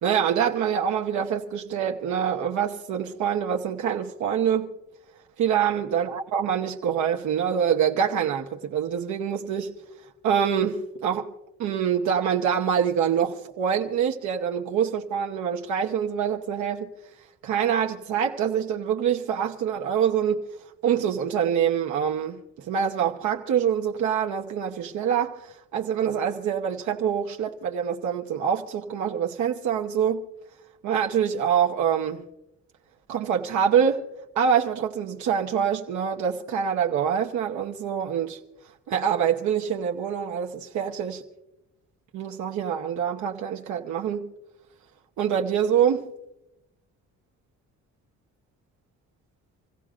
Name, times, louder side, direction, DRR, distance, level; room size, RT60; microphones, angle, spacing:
voice 1, 0.0-4.7 5.4-9.7 10.2-11.3 11.6-16.9 17.4-20.5 20.8-30.2 30.8-32.2 33.1-34.1 34.3-38.4 38.9-41.2 42.1-44.3 45.2-46.1, right 8 dB, 70° right, 1.0 m, -25 dB
27.0 x 16.0 x 2.5 m
cardioid pair, 150°, 31 cm